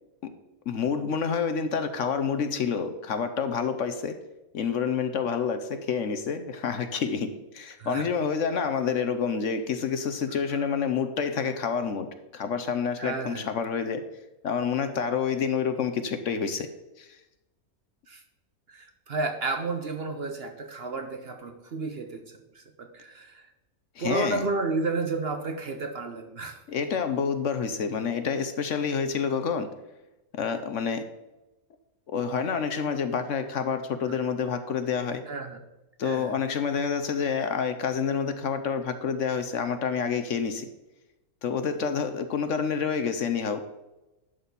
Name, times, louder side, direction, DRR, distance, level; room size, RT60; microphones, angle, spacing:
voice 1, 0.7-4.1 4.5-12.1 12.3-14.0 14.4-16.7 17.0-17.1 24.0-24.5 26.7-29.7 30.3-31.0 32.1-35.2 36.0-40.7 41.4-43.6, left 6 dB, 60° left, 9 dB, 1.0 m, -28 dB
voice 2, 13.0-13.5 18.1-18.2 18.7-23.5 24.0-26.6 34.0-34.1 35.3-35.6 36.0-36.3, right 3 dB, 50° right, 6 dB, 0.9 m, -32 dB
11.0 x 4.2 x 6.9 m, 0.99 s
omnidirectional pair, 1.6 m